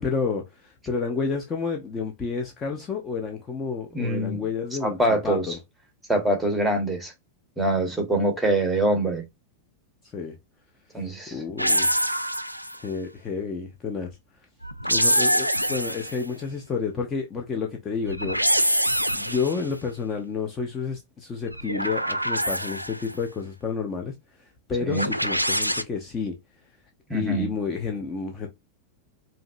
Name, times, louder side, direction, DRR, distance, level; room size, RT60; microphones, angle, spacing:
voice 1, 0.0-5.6 10.1-10.4 11.0-11.9 12.8-14.2 14.9-18.4 19.1-24.1 24.4-26.4 27.1-28.5, left 5 dB, 20° left, 0.8 m, -30 dB
voice 2, 3.9-4.4 4.8-5.6 6.1-7.1 7.6-9.2 10.9-11.4 24.9-25.1 27.1-27.5, right 1 dB, ahead, 1.5 m, -24 dB
sound 1, 11.6-12.9 14.6-16.3 18.1-19.7 21.5-23.1 24.9-25.8, equal, 90° right, 0.3 m, -25 dB
4.9 x 2.8 x 2.6 m
figure-of-eight pair, 90°, 0 cm